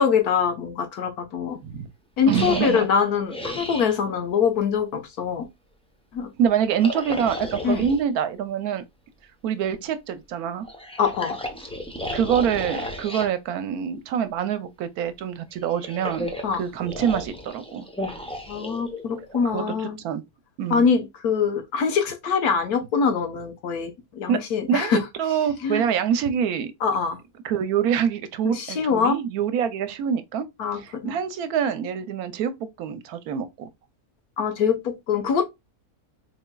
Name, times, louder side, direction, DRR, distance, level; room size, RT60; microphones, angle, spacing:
voice 1, 0.0-1.6 2.2-5.5 6.1-6.3 7.6-7.9 11.0-11.4 16.4-16.6 18.5-20.0 20.7-25.0 25.6-25.8 26.8-27.2 28.4-29.2 30.6-31.1 34.4-35.4, left 6 dB, 85° left, 1.4 m, -24 dB
sound 1, 2.3-4.0 6.7-8.0 10.6-13.3 15.5-19.4, left 1 dB, 5° left, 0.4 m, -34 dB
voice 2, 2.3-2.8 6.4-8.8 9.4-10.7 12.1-17.9 19.5-20.2 20.6-20.9 24.3-24.4 24.7-26.7 27.4-30.5 30.7-33.7, right 8 dB, 80° right, 1.2 m, -25 dB
4.2 x 3.5 x 2.2 m
omnidirectional pair, 1.6 m